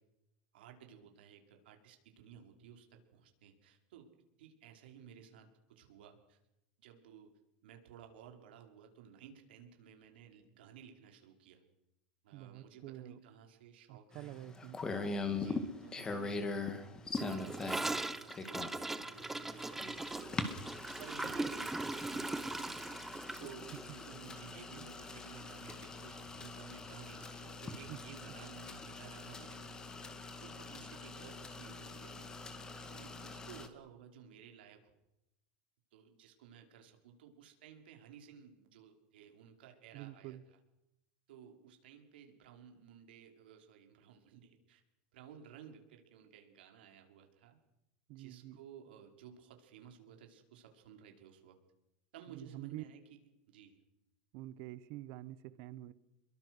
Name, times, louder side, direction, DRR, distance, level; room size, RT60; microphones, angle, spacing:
voice 1, 0.5-6.4 6.8-11.6 12.2-14.4 15.4-16.8 17.2-20.4 21.0-22.9 23.4-29.9 30.4-32.4 32.9-35.0 35.9-40.4 41.3-44.8 45.1-47.6 48.2-51.6 52.1-53.2 53.5-53.8, right 8 dB, 90° right, 4 dB, 5.3 m, -56 dB
voice 2, 12.3-13.2 13.9-15.0 24.7-24.9 27.9-28.1 39.9-40.4 48.1-48.6 52.3-52.8 54.3-55.9, right 15 dB, 45° right, 16 dB, 1.3 m, -47 dB
sound 1, 14.1-33.7, left 3 dB, 15° left, 2.1 m, -43 dB
Gurgling / Toilet flush, 17.2-25.4 25.7-25.8 26.1-26.6 26.8-26.9 27.2-27.3 28.3-28.4, right 2 dB, 5° right, 0.9 m, -40 dB
29.0 x 22.5 x 6.3 m, 0.88 s
supercardioid pair, 170°, 5 cm